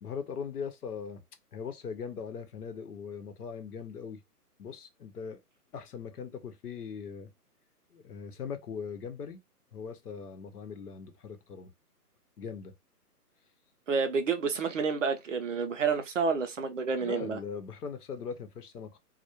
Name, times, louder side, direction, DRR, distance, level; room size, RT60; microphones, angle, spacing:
voice 1, 0.0-1.2 1.5-4.2 4.6-5.4 5.7-7.3 7.9-9.4 9.7-11.7 12.4-12.7 17.0-19.0, left 6 dB, 70° left, 0.8 m, -40 dB
voice 2, 13.9-17.4, right 5 dB, 55° right, 0.5 m, -29 dB
2.2 x 2.1 x 2.8 m
hypercardioid pair, 165°, 47 cm